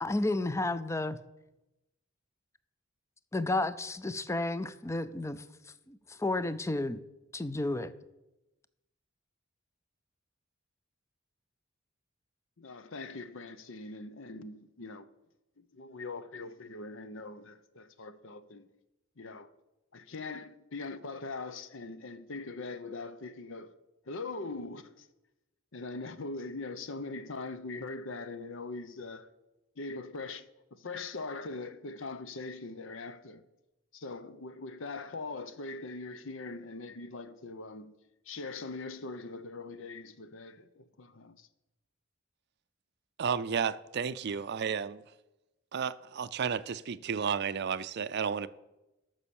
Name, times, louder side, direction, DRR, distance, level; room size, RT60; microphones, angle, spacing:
voice 1, 0.0-1.2 3.3-5.4 5.9-7.0 7.3-7.9, left 2 dB, 15° left, 0.5 m, -32 dB
voice 2, 12.6-15.1 15.6-18.7 19.2-19.5 19.9-23.7 24.0-25.1 25.7-29.3 29.8-33.4 33.9-37.9 38.2-41.5, left 3 dB, 65° left, 0.8 m, -41 dB
voice 3, 43.2-45.0 45.7-48.5, right 6 dB, 55° right, 0.5 m, -32 dB
13.0 x 6.3 x 7.1 m
head